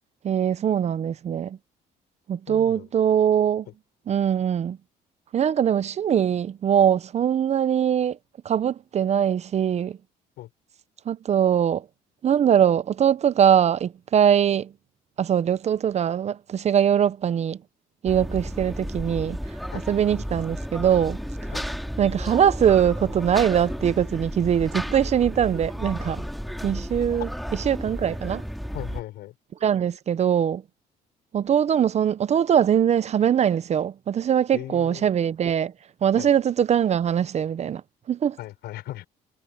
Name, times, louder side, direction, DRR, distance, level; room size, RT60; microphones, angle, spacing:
voice 1, 0.2-1.6 2.3-3.7 4.1-4.8 5.3-8.2 8.4-10.0 11.1-11.8 12.2-14.7 15.2-17.6 18.0-19.4 19.9-21.2 22.0-26.2 26.6-27.3 27.7-28.4 29.6-30.6 31.3-35.7 36.0-37.8 38.1-38.4, right 9 dB, 40° right, 0.6 m, -22 dB
voice 2, 2.5-2.9 10.4-10.5 19.7-19.8 21.5-21.6 28.7-29.3 34.5-35.1 36.2-36.3 38.4-39.1, left 15 dB, 80° left, 5.3 m, -37 dB
sound 1, 18.1-29.0, equal, ahead, 2.2 m, -33 dB
cardioid pair, 110°, 17 cm